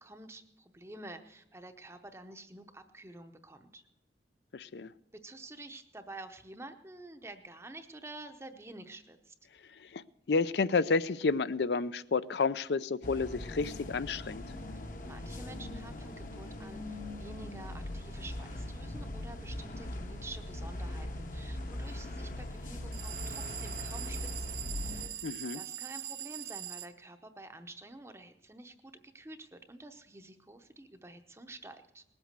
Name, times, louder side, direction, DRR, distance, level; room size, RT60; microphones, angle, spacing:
voice 1, 0.0-3.8 5.1-9.3 14.7-25.3 25.5-32.0, right 2 dB, 15° right, 7 dB, 0.7 m, -49 dB
voice 2, 4.5-4.9 9.7-14.4 25.2-25.6, left 4 dB, 70° left, 16 dB, 0.5 m, -31 dB
sound 1, 13.0-25.1, left 1 dB, 45° left, 1.0 m, -40 dB
sound 2, 22.9-26.9, right 11 dB, 65° right, 0.5 m, -42 dB
19.5 x 8.1 x 6.6 m, 0.82 s
head